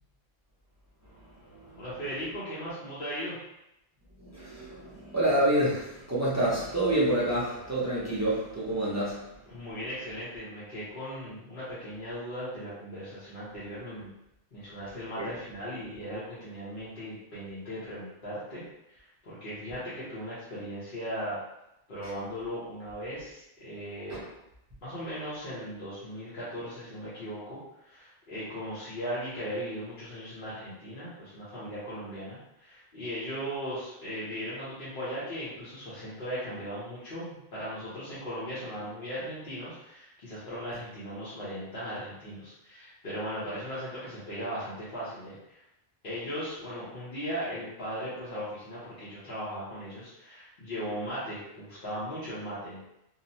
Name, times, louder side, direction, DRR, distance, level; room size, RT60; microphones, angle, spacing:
voice 1, 1.7-3.4 9.5-14.1 14.5-18.6 18.9-21.4 21.9-24.2 24.8-45.6 46.0-52.8, equal, 50° left, -11 dB, 1.0 m, -38 dB
voice 2, 4.2-9.2 24.1-24.2, right 1 dB, 25° right, -7 dB, 0.4 m, -27 dB
2.9 x 2.1 x 2.6 m, 0.86 s
omnidirectional pair, 1.2 m